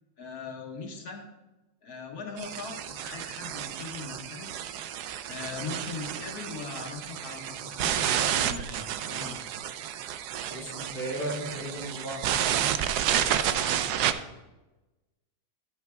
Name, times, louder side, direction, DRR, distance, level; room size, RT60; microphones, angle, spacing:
voice 1, 0.2-1.2 1.8-4.5 5.3-9.4 13.1-13.9, left 4 dB, 75° left, 1 dB, 1.9 m, -40 dB
sound 1, 2.4-14.1, right 10 dB, 90° right, 1.1 m, -31 dB
voice 2, 10.5-12.3, right 1 dB, 35° left, -1 dB, 1.8 m, -35 dB
12.5 x 8.1 x 2.3 m, 1.1 s
omnidirectional pair, 1.7 m